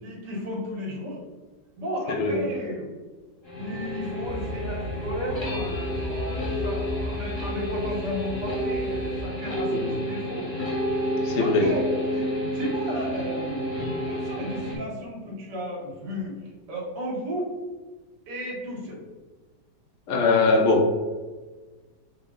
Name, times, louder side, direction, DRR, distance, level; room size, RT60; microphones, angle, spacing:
voice 1, 0.0-1.2 1.8-2.9 3.5-10.5 11.3-17.5 18.3-19.0, equal, 85° right, -3 dB, 1.7 m, -34 dB
voice 2, 2.1-2.5 9.7-9.9 11.2-11.7 20.1-20.9, left 3 dB, 65° left, 2 dB, 0.8 m, -21 dB
sound 1, 3.4-14.8, equal, 25° left, 0.6 m, -30 dB
sound 2, 4.2-9.3, left 1 dB, 60° right, 1.1 m, -35 dB
4.1 x 2.0 x 3.6 m, 1.3 s
omnidirectional pair, 1.8 m